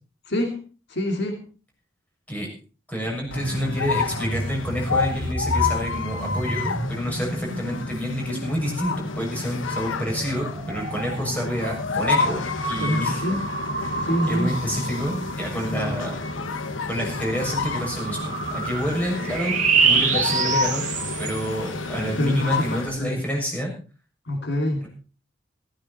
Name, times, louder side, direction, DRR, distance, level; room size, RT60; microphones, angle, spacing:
voice 1, 0.3-0.6 0.9-1.4 12.8-13.4 14.0-14.5 15.7-16.1 22.2-22.7 23.0-23.2 24.3-24.9, left 1 dB, 60° left, 3 dB, 2.8 m, -25 dB
voice 2, 2.9-13.2 13.8-16.2 16.9-19.5 19.8-20.8 21.2-23.7, equal, 10° left, -1 dB, 6.8 m, -28 dB
sound 1, 3.1-9.1 9.6-21.7, right 4 dB, 40° right, 2.3 m, -29 dB
sound 2, 3.3-23.0, left 4 dB, 85° left, 1.4 m, -29 dB
15.5 x 15.0 x 4.3 m, 0.36 s
head